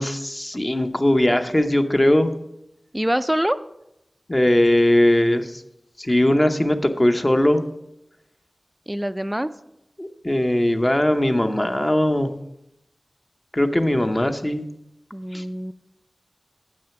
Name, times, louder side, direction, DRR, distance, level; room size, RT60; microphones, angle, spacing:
voice 1, 0.0-2.3 4.3-5.6 6.0-7.6 10.0-12.3 13.5-14.6 15.3-15.4, left 1 dB, 25° left, 7 dB, 0.7 m, -19 dB
voice 2, 2.9-3.6 8.9-9.5 15.1-15.7, equal, 10° right, 12 dB, 0.3 m, -24 dB
8.4 x 6.2 x 5.8 m, 0.84 s
wide cardioid pair, 65°, 0 cm